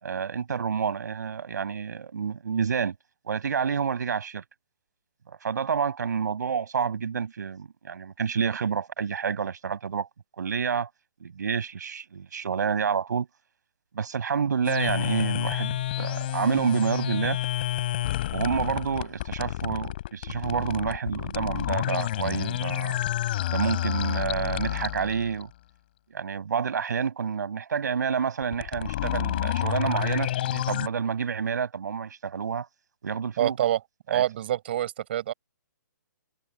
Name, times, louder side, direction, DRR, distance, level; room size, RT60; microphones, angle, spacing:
voice 1, 0.0-2.9 3.2-4.4 5.3-10.1 10.4-10.9 11.2-13.3 13.9-17.4 18.3-23.0 23.5-25.5 26.1-32.7 33.0-33.6 34.1-34.2, right 6 dB, 65° right, 5.5 m, -29 dB
sound 1, 14.6-25.4 28.4-30.9, left 13 dB, 30° left, 3.7 m, -29 dB
voice 2, 33.4-33.8 34.1-35.3, right 12 dB, 35° right, 6.2 m, -26 dB
hypercardioid pair, 175°, 10 cm